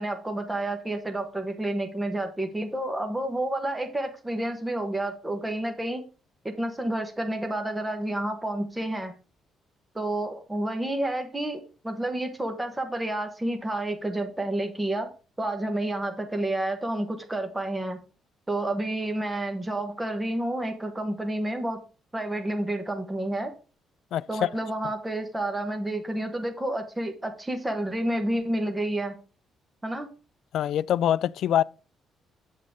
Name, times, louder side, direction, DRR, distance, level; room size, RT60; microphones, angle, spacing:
voice 1, 0.0-6.0 6.4-9.1 9.9-15.1 15.4-18.0 18.5-21.8 22.1-23.5 24.3-29.2 29.8-30.1, right 1 dB, 10° right, 1.2 m, -30 dB
voice 2, 24.1-24.5 30.5-31.6, left 11 dB, 65° left, 0.3 m, -24 dB
8.3 x 7.6 x 3.7 m
cardioid pair, 155°, 0 cm